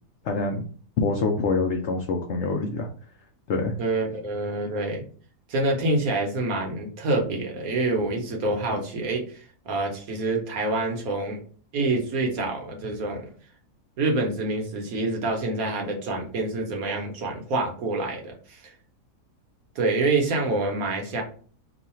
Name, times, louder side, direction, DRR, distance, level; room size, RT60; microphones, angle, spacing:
voice 1, 0.2-0.6 1.0-2.9 3.5-3.7, left 3 dB, 75° left, 2 dB, 0.6 m, -25 dB
voice 2, 3.8-5.0 5.5-11.4 11.7-13.3 14.0-18.7 19.7-21.2, right 2 dB, 65° right, 1 dB, 1.2 m, -27 dB
3.1 x 2.3 x 4.2 m, 0.43 s
omnidirectional pair, 1.7 m